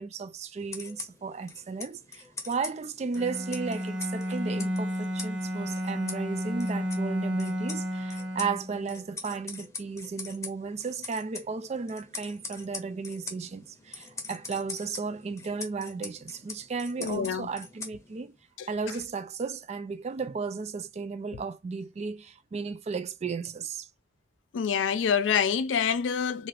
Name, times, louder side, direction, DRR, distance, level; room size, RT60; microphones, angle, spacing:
voice 1, 0.0-18.4 18.7-23.9, right 4 dB, 35° right, 0.3 m, -34 dB
sound 1, 0.6-18.4, left 4 dB, 15° left, 0.7 m, -44 dB
Bowed string instrument, 3.1-8.9, equal, 70° right, 0.9 m, -32 dB
voice 2, 17.0-17.5 18.6-18.7 24.5-26.5, left 7 dB, 80° left, 0.4 m, -26 dB
2.6 x 2.4 x 3.2 m
head